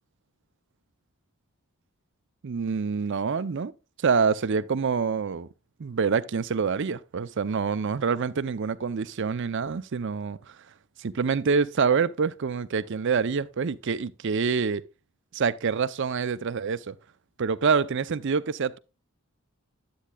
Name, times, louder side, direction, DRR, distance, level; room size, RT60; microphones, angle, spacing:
voice 1, 2.4-3.7 4.0-5.5 5.8-10.6 11.0-14.8 15.3-17.0 17.4-18.8, right 5 dB, 55° right, 0.5 m, -26 dB
10.0 x 8.5 x 2.3 m
head